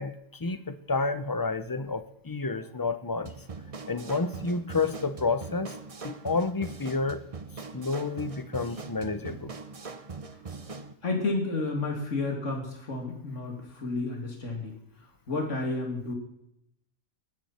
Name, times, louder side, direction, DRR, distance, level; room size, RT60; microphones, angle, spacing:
voice 1, 0.0-3.3 3.9-5.7 6.0-7.2 7.7-9.5, left 3 dB, 20° left, 12 dB, 0.6 m, -30 dB
sound 1, 3.3-10.9, right 4 dB, 30° right, 0.8 m, -42 dB
voice 2, 11.0-16.1, left 3 dB, 65° left, 1 dB, 3.0 m, -31 dB
21.5 x 10.0 x 4.4 m, 0.79 s
omnidirectional pair, 1.4 m